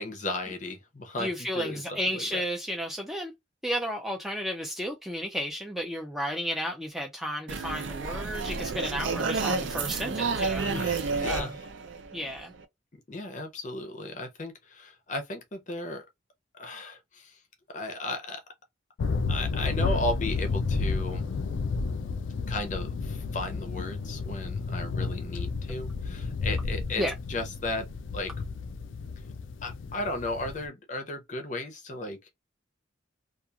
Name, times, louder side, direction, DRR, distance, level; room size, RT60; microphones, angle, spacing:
voice 1, 0.0-2.4 10.7-11.5 13.1-16.0 16.6-17.4 17.7-18.4 19.3-21.3 22.5-27.0 27.3-27.9 28.1-28.3 29.6-32.3, left 2 dB, 40° left, 0.6 m, -35 dB
voice 2, 1.2-3.3 3.6-10.7 11.3-11.5 12.1-12.5 27.0-27.1, equal, ahead, 0.4 m, -32 dB
sound 1, 7.5-12.6, right 4 dB, 80° right, 0.5 m, -30 dB
sound 2, 19.0-30.7, left 4 dB, 85° left, 0.4 m, -31 dB
2.9 x 2.4 x 2.3 m
head